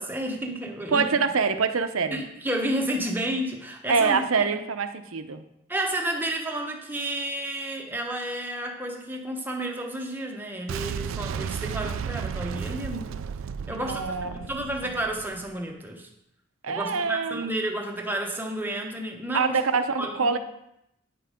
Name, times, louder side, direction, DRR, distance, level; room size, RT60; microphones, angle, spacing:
voice 1, 0.0-1.1 2.1-4.2 4.5-4.6 5.7-13.2 13.7-16.1 16.7-19.6 20.0-20.3, right 1 dB, 10° right, 1 dB, 1.0 m, -31 dB
voice 2, 0.9-2.2 3.9-5.4 13.7-14.4 14.8-14.9 16.6-17.4 19.3-20.4, right 5 dB, 85° right, 9 dB, 0.7 m, -25 dB
Boom, 10.7-15.6, right 7 dB, 65° right, 0.3 m, -34 dB
9.3 x 5.8 x 5.0 m, 0.81 s
head